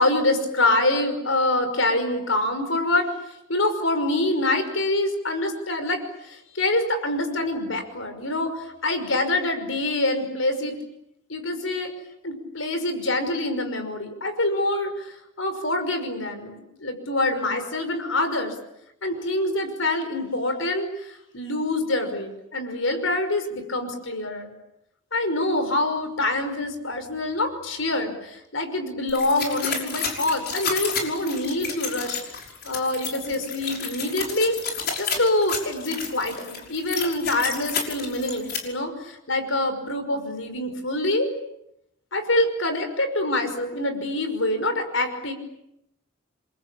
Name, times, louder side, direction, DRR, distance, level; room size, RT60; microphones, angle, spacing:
voice 1, 0.0-3.1 3.5-10.8 11.3-11.9 12.2-18.5 19.0-24.5 25.1-32.2 32.6-34.6 35.0-41.3 42.1-45.3, left 2 dB, 80° left, 8 dB, 5.7 m, -25 dB
sound 1, 29.1-38.6, left 6 dB, 50° left, 5.7 m, -31 dB
29.5 x 23.5 x 8.7 m, 0.84 s
head